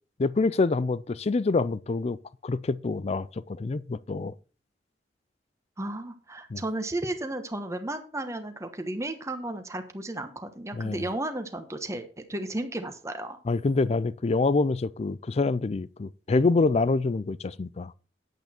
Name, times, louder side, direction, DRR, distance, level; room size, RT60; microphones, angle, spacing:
voice 1, 0.2-2.2 2.4-4.3 6.5-6.6 10.7-11.0 13.5-17.9, left 3 dB, 35° left, 0.4 m, -26 dB
voice 2, 5.8-13.4, right 1 dB, 15° right, 1.1 m, -34 dB
9.3 x 8.2 x 4.4 m
head